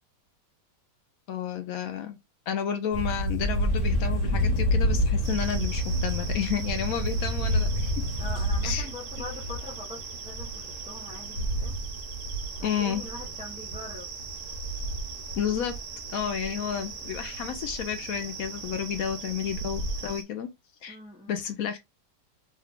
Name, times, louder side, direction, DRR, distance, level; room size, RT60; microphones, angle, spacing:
voice 1, 1.3-2.2 2.5-8.0 8.6-8.9 9.2-9.3 12.6-13.0 15.4-15.7 16.1-20.5 20.8-21.0 21.3-21.8, left 8 dB, 70° left, 0.9 m, -31 dB
sound 1, 2.9-8.8, left 1 dB, 50° right, 1.4 m, -27 dB
sound 2, 3.4-20.2, right 2 dB, 50° left, 1.3 m, -35 dB
sound 3, 5.2-20.2, right 6 dB, 70° right, 1.3 m, -41 dB
voice 2, 8.2-11.8 12.6-14.1 20.9-21.4, left 2 dB, 5° right, 0.5 m, -43 dB
3.2 x 2.2 x 3.6 m
omnidirectional pair, 1.8 m